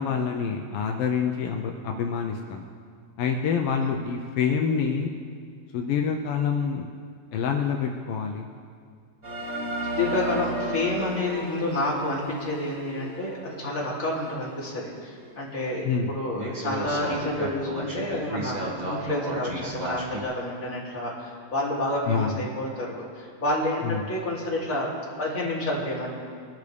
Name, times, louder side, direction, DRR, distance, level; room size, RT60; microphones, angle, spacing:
voice 1, 0.0-2.6 3.2-5.1 5.7-6.9 7.3-8.5 15.8-16.1 22.1-22.4 23.8-24.0, left 6 dB, 75° left, 2 dB, 1.4 m, -26 dB
sound 1, 9.2-14.6 15.1-15.2 15.8-15.9 16.3-20.2, right 1 dB, 45° right, 0.5 m, -34 dB
voice 2, 9.9-24.9 25.2-26.1, left 1 dB, 30° left, -5 dB, 3.0 m, -29 dB
22.5 x 12.0 x 3.4 m, 2.2 s
omnidirectional pair, 3.4 m